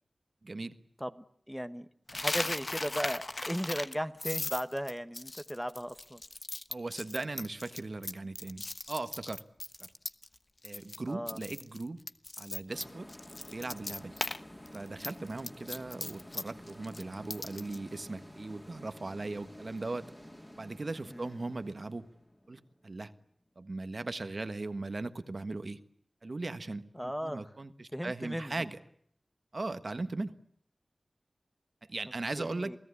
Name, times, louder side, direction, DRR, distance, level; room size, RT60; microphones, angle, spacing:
voice 1, 0.4-0.8 6.7-9.4 9.8-9.9 10.6-12.0 12.4-13.1 13.5-14.1 14.7-20.1 20.6-22.1 22.5-23.1 23.6-25.8 26.2-28.8 29.5-30.3 31.9-32.7, right 2 dB, 55° right, 11 dB, 1.4 m, -38 dB
voice 2, 1.5-6.2 11.1-11.4 21.1-21.4 26.9-27.5 27.9-28.5 32.4-32.8, equal, ahead, 10 dB, 1.3 m, -36 dB
Coin (dropping), 2.1-10.4 10.6-11.0 11.3-14.4 14.7-17.8, left 2 dB, 45° left, 1.2 m, -38 dB
sound 1, 12.7-23.2, left 1 dB, 15° left, 3.6 m, -51 dB
28.5 x 17.5 x 9.8 m, 0.66 s
wide cardioid pair, 70°, 0 cm